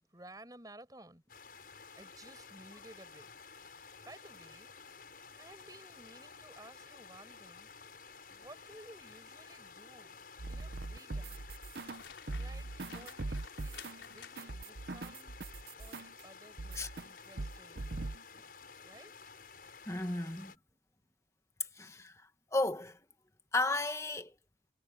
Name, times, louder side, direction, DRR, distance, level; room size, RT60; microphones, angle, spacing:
voice 1, 0.1-1.2 1.9-3.3 4.1-4.7 5.4-7.7 8.3-10.2 10.5-11.5 12.4-15.4 15.8-17.8 18.8-19.1 20.5-21.1, right 1 dB, 20° right, 7.1 m, -56 dB
sound 1, 1.3-20.6, left 5 dB, 50° left, 7.3 m, -53 dB
sound 2, 10.4-12.0 12.3-16.2 16.6-17.1 17.4-18.2, right 2 dB, 60° right, 0.8 m, -41 dB
sound 3, 11.8-14.8 17.2-17.5 18.0-18.2, left 7 dB, 90° left, 4.6 m, -53 dB
voice 2, 19.9-20.5 21.8-22.1 22.5-23.0 23.5-24.3, left 2 dB, 15° left, 1.4 m, -33 dB
head